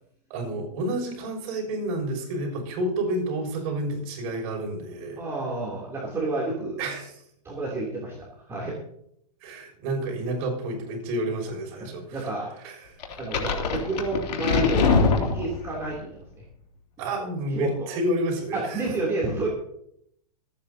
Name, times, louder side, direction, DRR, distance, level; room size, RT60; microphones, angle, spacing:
voice 1, 0.3-5.2 6.8-7.1 9.4-12.3 12.6-12.7 17.0-18.8, right 1 dB, 45° right, 0 dB, 6.6 m, -29 dB
voice 2, 5.2-6.8 7.4-8.8 11.8-12.5 13.2-16.4 17.5-17.9 18.5-19.5, right 3 dB, 15° right, -5 dB, 3.2 m, -30 dB
sound 1, 13.0-15.9, left 4 dB, 85° left, 3.2 m, -23 dB
26.5 x 9.8 x 2.9 m, 0.73 s
hypercardioid pair, 145°, 20 cm